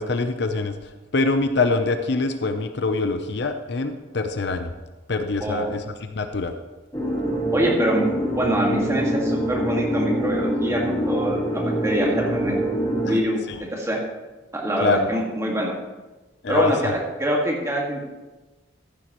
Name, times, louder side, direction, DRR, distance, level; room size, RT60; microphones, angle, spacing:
voice 1, 0.0-4.7 5.1-6.5 13.1-13.2 13.5-13.6 14.8-15.1 16.4-16.9, left 3 dB, 60° left, 7 dB, 0.7 m, -24 dB
voice 2, 5.4-5.8 7.5-8.0 8.3-12.5 13.0-13.4 13.7-14.0 14.5-15.7 16.5-18.0, right 1 dB, 15° right, -2 dB, 1.8 m, -24 dB
sound 1, 6.9-13.2, right 1 dB, 20° left, 1.9 m, -24 dB
14.0 x 9.8 x 3.1 m, 1.1 s
head